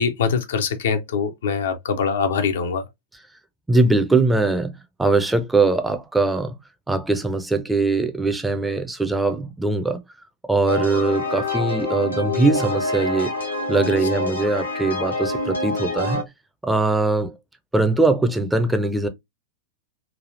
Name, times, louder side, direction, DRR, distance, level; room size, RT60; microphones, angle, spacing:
voice 1, 0.0-2.8, left 6 dB, 60° left, 0.5 m, -23 dB
voice 2, 3.7-6.6 6.9-10.0 10.5-13.3 13.7-16.3 16.6-17.3 17.7-19.1, right 3 dB, 5° right, 0.5 m, -21 dB
sound 1, 10.7-16.2, left 2 dB, 90° left, 1.0 m, -26 dB
3.2 x 2.3 x 2.5 m
figure-of-eight pair, 90°, 0 cm